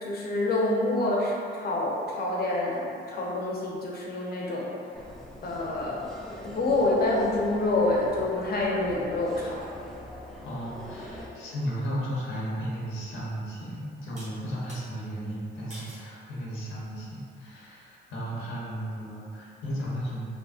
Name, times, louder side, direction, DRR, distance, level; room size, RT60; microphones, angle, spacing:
voice 1, 0.0-4.7 5.4-6.1 6.4-9.6, left 2 dB, 50° left, -3 dB, 0.6 m, -27 dB
sound 1, 4.9-11.3, left 1 dB, ahead, 0.4 m, -43 dB
voice 2, 10.4-20.2, equal, 80° left, -6 dB, 0.8 m, -34 dB
sound 2, 14.2-14.8 15.7-16.1 16.7-17.2, right 1 dB, 35° right, 1.1 m, -47 dB
3.6 x 2.0 x 2.3 m, 2.4 s
cardioid pair, 90°, 20 cm